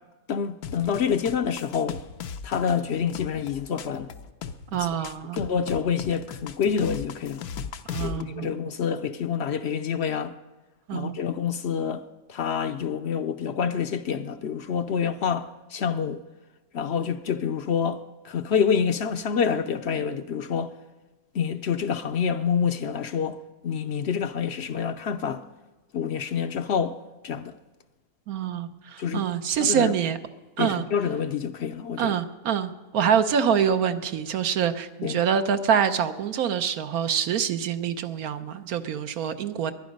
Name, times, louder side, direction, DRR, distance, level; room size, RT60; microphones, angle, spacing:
voice 1, 0.3-2.0 2.4-4.1 5.3-7.4 7.9-10.3 10.9-12.0 12.3-16.2 16.7-20.7 21.3-23.4 23.6-25.4 25.9-27.0 27.2-27.5 29.0-29.2 29.6-29.9 30.6-32.2 35.0-35.2, left 7 dB, 60° left, 0.7 m, -27 dB
sound 1, 0.6-8.2, left 7 dB, 85° left, 1.2 m, -37 dB
voice 2, 4.7-5.4 7.9-8.5 10.9-11.2 28.3-30.2 30.6-30.8 32.0-39.7, right 8 dB, 75° right, 1.3 m, -25 dB
21.5 x 10.5 x 5.3 m
omnidirectional pair, 1.5 m